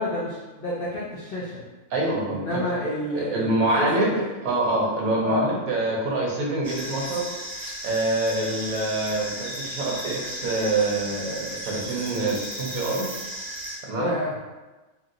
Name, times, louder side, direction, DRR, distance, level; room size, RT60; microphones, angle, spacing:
voice 1, 0.0-1.6 2.3-4.1 5.2-5.5 13.9-14.3, left 1 dB, 70° left, -6 dB, 0.5 m, -29 dB
voice 2, 1.9-2.6 3.2-7.2 7.8-13.1 13.8-14.1, right 2 dB, 70° right, -2 dB, 1.1 m, -26 dB
sound 1, 6.6-13.8, right 1 dB, 25° left, 1.4 m, -35 dB
2.8 x 2.8 x 2.4 m, 1.2 s
omnidirectional pair, 1.6 m